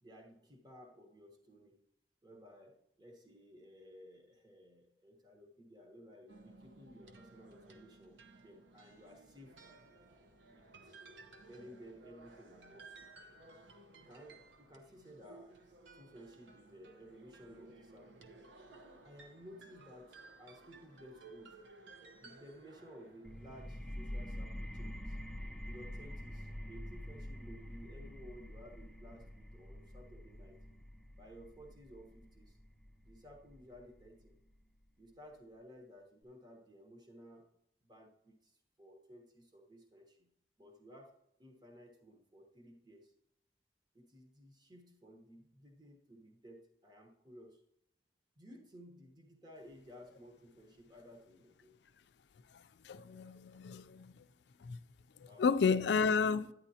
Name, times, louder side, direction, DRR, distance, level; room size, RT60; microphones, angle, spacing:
voice 1, 0.0-1.8 2.2-9.6 10.5-11.0 11.5-13.2 14.0-15.5 15.9-18.4 19.0-21.6 22.2-25.2 25.6-30.6 31.2-32.6 33.0-34.4 35.0-37.5 37.8-40.3 40.6-43.1 43.9-47.6 48.4-51.7 55.3-55.4, equal, 25° right, 1.1 m, -56 dB
sound 1, 6.3-23.9, right 3 dB, 90° right, 0.9 m, -58 dB
sound 2, 23.2-34.7, equal, ahead, 0.4 m, -47 dB
voice 2, 52.8-54.1 54.6-54.8 55.4-56.5, left 5 dB, 70° left, 0.4 m, -31 dB
10.0 x 9.7 x 2.8 m
head